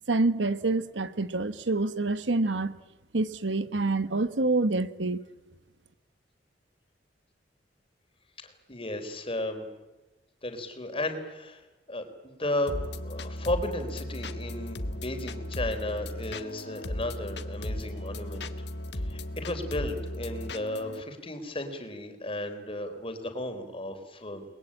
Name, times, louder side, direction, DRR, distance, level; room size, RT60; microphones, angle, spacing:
voice 1, 0.1-2.7 3.1-5.2, right 2 dB, 85° right, 1.3 m, -27 dB
voice 2, 8.7-9.6 10.4-11.6 11.9-12.8 13.0-18.5 19.1-24.5, left 1 dB, 30° left, 3.9 m, -34 dB
sound 1, 12.7-21.0, left 1 dB, 65° left, 1.7 m, -36 dB
29.5 x 21.0 x 8.8 m
head